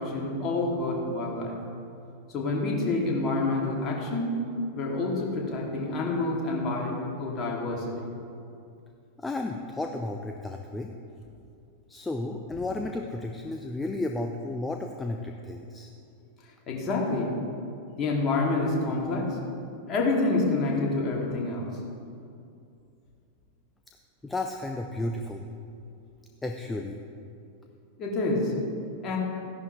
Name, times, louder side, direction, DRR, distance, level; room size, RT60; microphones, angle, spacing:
voice 1, 0.0-1.6 2.3-4.4 4.7-8.0 16.7-17.3 18.0-19.4 19.9-21.7 28.0-28.5 29.0-29.2, left 2 dB, 30° left, -2 dB, 2.6 m, -28 dB
voice 2, 9.2-10.9 11.9-15.9 24.2-25.4 26.4-27.0, left 2 dB, 10° left, 3 dB, 0.6 m, -33 dB
15.0 x 11.0 x 3.3 m, 2.5 s
figure-of-eight pair, 90°, 0 cm